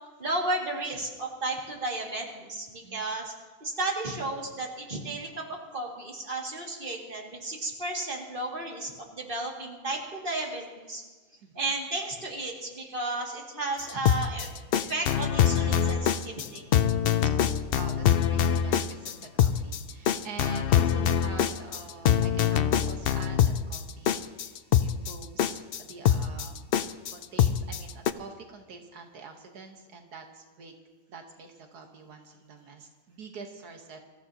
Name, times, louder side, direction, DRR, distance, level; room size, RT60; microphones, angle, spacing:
voice 1, 0.2-3.3 3.6-11.0 11.5-14.5 14.9-16.6, right 2 dB, 35° right, -1 dB, 2.4 m, -33 dB
voice 2, 11.4-11.7 13.9-14.1 17.7-26.6 27.1-30.7 31.1-34.0, right 4 dB, 90° right, 3 dB, 1.9 m, -45 dB
sound 1, 13.9-28.1, left 9 dB, 80° left, 0.5 m, -24 dB
25.5 x 14.5 x 2.9 m, 1.3 s
omnidirectional pair, 1.6 m